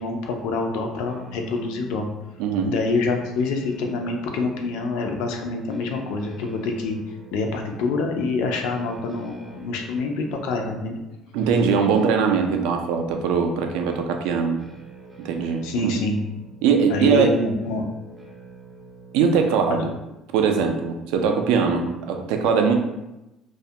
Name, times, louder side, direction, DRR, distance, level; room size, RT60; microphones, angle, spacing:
voice 1, 0.0-2.1 2.6-7.0 7.3-11.0 15.6-16.2 16.9-17.8, left 3 dB, 80° left, 3 dB, 0.4 m, -26 dB
sound 1, 1.1-19.9, right 4 dB, 10° right, 0.4 m, -46 dB
voice 2, 2.4-2.7 11.3-14.6 15.2-15.9 16.6-17.4 19.1-19.8 20.3-22.7, right 6 dB, 90° right, 4 dB, 0.3 m, -21 dB
2.3 x 2.1 x 2.7 m, 0.96 s
cardioid pair, 165°, 0 cm